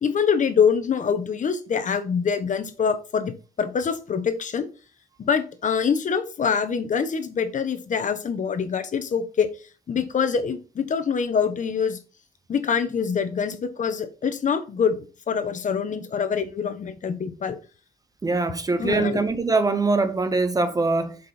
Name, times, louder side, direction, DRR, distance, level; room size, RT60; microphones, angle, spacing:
voice 1, 0.0-4.7 5.2-9.5 9.9-12.0 12.5-15.0 15.3-17.6 18.8-19.2, left 6 dB, 50° left, 1.2 m, -25 dB
voice 2, 18.2-21.2, right 3 dB, 20° right, 0.8 m, -23 dB
7.5 x 5.3 x 4.3 m
cardioid pair, 120°, 16 cm